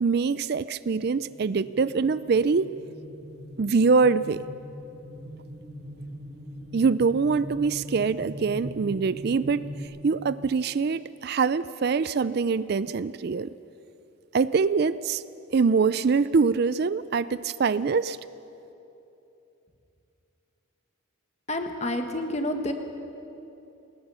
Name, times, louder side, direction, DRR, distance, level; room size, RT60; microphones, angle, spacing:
voice 1, 0.0-2.7 3.6-4.4 6.7-9.7 10.0-13.5 14.3-15.2 15.5-18.2, right 4 dB, 50° right, 16 dB, 0.4 m, -24 dB
sound 1, 1.0-9.8, equal, 80° right, 5.3 m, -41 dB
voice 2, 21.5-22.7, left 1 dB, 30° left, 5 dB, 1.5 m, -29 dB
27.0 x 19.5 x 5.7 m, 2.9 s
head